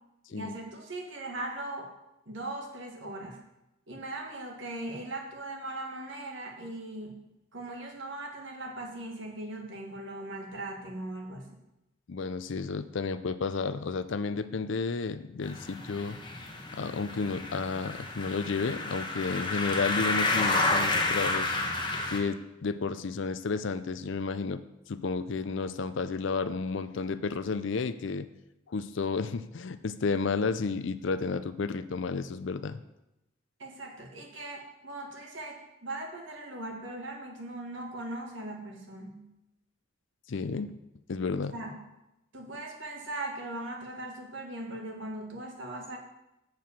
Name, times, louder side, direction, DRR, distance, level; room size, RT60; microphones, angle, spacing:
voice 1, 0.3-1.9 2.3-3.4 3.9-7.2 7.5-11.6 33.6-39.3 41.5-41.8 42.3-46.0, right 2 dB, 60° right, 1 dB, 1.6 m, -39 dB
voice 2, 12.1-16.2 16.7-21.5 22.1-24.6 24.9-28.3 28.7-32.8 40.3-40.7 41.1-41.5, left 4 dB, 60° left, 13 dB, 0.5 m, -32 dB
sound 1, 15.4-22.2, left 2 dB, 20° left, 0.9 m, -30 dB
7.6 x 4.8 x 6.9 m, 0.91 s
head